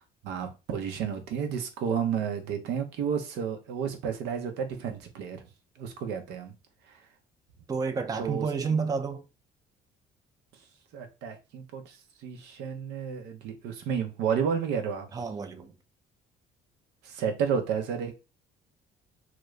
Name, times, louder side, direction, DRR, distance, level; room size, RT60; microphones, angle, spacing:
voice 1, 0.2-5.4 5.8-6.5 6.9-7.0 8.2-8.5 10.9-15.1 17.0-18.3, right 7 dB, 85° right, 0.8 m, -31 dB
voice 2, 7.7-9.2 15.1-15.7, right 5 dB, 20° right, 0.4 m, -30 dB
2.9 x 2.5 x 3.1 m
cardioid pair, 110°, 17 cm